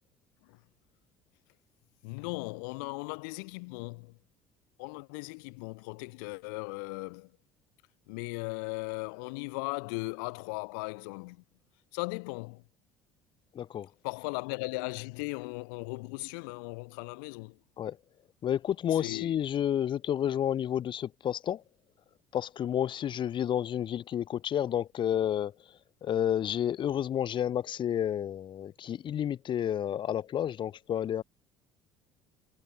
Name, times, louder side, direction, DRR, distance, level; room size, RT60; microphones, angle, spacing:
voice 1, 2.0-4.1 4.8-7.3 8.1-11.4 11.9-12.6 14.0-17.6 18.9-19.3, left 31 dB, 65° left, 4.1 m, -37 dB
voice 2, 13.5-13.9 17.8-18.0 18.4-21.6 22.3-25.5 26.0-31.2, left 10 dB, 45° left, 3.6 m, -30 dB
figure-of-eight pair, 60°, 11 cm